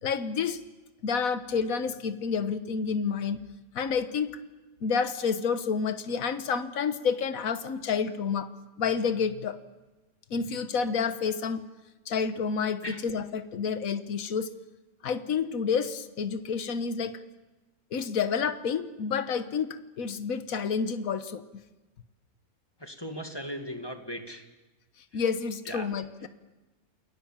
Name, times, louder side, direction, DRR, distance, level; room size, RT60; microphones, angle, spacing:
voice 1, 0.0-0.6 1.0-3.4 3.7-4.4 4.8-8.5 8.8-9.6 10.3-11.6 12.1-14.5 15.0-17.2 17.9-21.4 25.1-26.3, left 6 dB, 65° left, 10 dB, 1.6 m, -29 dB
voice 2, 22.8-24.4 25.1-25.2 25.7-25.9, equal, 15° left, 5 dB, 2.0 m, -38 dB
29.0 x 21.5 x 7.4 m, 1.1 s
omnidirectional pair, 1.6 m